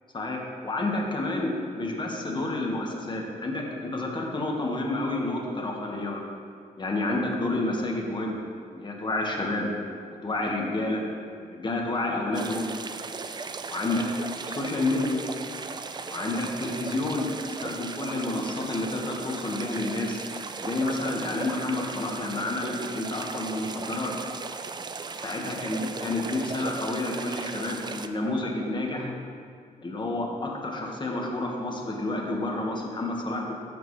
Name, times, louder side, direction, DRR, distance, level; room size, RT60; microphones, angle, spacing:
voice 1, 0.1-6.2 6.8-8.4 8.7-9.7 10.2-11.0 11.4-12.7 13.7-14.1 14.5-15.2 16.0-17.3 17.6-20.2 20.6-24.1 25.2-29.1 29.8-33.5, left 2 dB, 30° left, 0 dB, 1.4 m, -29 dB
sound 1, 12.3-28.1, right 4 dB, 30° right, 0.4 m, -37 dB
14.5 x 5.1 x 3.2 m, 2.2 s
cardioid pair, 90°, 15 cm